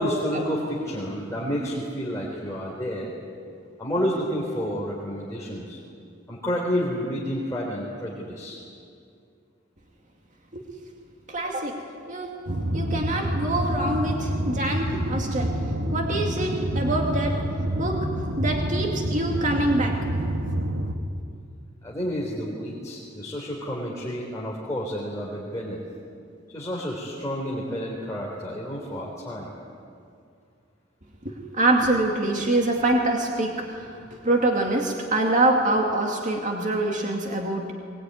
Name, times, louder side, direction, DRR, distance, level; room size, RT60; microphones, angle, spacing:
voice 1, 0.0-3.1 3.8-5.8 6.3-8.6 21.8-25.8 26.5-29.5, equal, 15° left, -5 dB, 3.8 m, -30 dB
voice 2, 11.3-11.8 12.1-12.3 12.7-15.5 15.9-17.4 17.8-18.1 18.4-20.0 31.2-37.7, right 2 dB, 40° right, 1 dB, 2.3 m, -25 dB
sound 1, 12.5-20.9, right 1 dB, 80° right, 1.7 m, -27 dB
22.5 x 21.0 x 9.5 m, 2.4 s
head